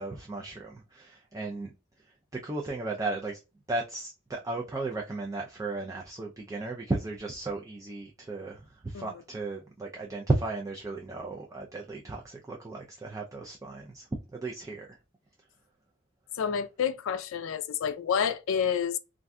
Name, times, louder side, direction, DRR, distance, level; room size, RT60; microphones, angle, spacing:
voice 1, 0.0-1.7 2.4-3.4 3.7-15.0, right 2 dB, 15° right, 0.3 m, -35 dB
voice 2, 16.4-19.0, left 7 dB, 70° left, 0.4 m, -29 dB
2.5 x 2.2 x 3.5 m
head